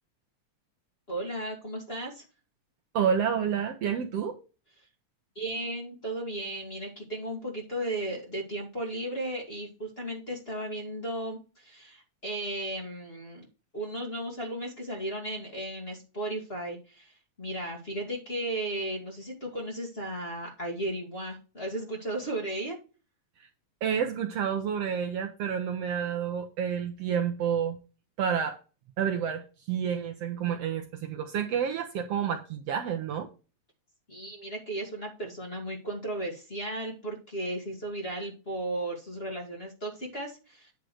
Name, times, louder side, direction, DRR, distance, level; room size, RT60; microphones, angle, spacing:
voice 1, 1.1-2.2 5.4-13.5 13.7-22.8 34.1-40.7, right 1 dB, 20° left, 2.0 m, -35 dB
voice 2, 2.9-4.4 23.8-27.8 28.2-28.6 29.0-33.3, right 8 dB, 70° right, 1.7 m, -29 dB
9.4 x 3.7 x 6.4 m
omnidirectional pair, 3.3 m